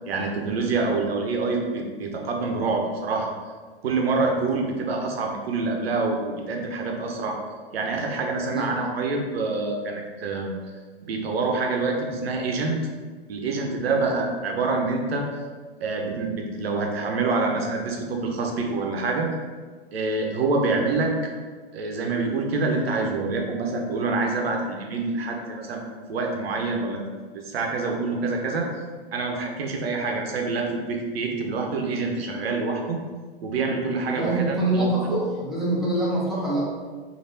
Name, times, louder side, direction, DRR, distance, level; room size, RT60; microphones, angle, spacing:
voice 1, 0.1-3.3 3.8-7.4 7.7-10.5 11.0-12.8 13.3-15.3 15.8-19.3 19.9-21.1 21.7-25.8 26.1-27.0 27.3-28.7 29.1-33.0 33.4-34.9, right 3 dB, 80° right, 1 dB, 0.6 m, -26 dB
voice 2, 34.1-36.7, right 1 dB, ahead, -8 dB, 0.8 m, -25 dB
3.2 x 2.5 x 2.6 m, 1.5 s
hypercardioid pair, 115°, 30 cm